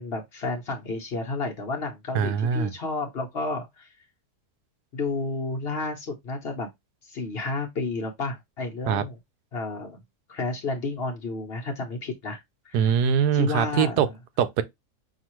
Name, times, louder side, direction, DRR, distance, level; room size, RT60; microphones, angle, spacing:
voice 1, 0.0-3.9 4.9-6.7 7.0-9.2 9.5-10.0 10.3-13.0 13.3-14.1, left 3 dB, 50° left, 0.8 m, -31 dB
voice 2, 2.1-2.7 8.9-9.0 12.7-14.1 14.4-14.6, right 7 dB, 85° right, 1.1 m, -22 dB
5.7 x 2.4 x 3.0 m
omnidirectional pair, 1.7 m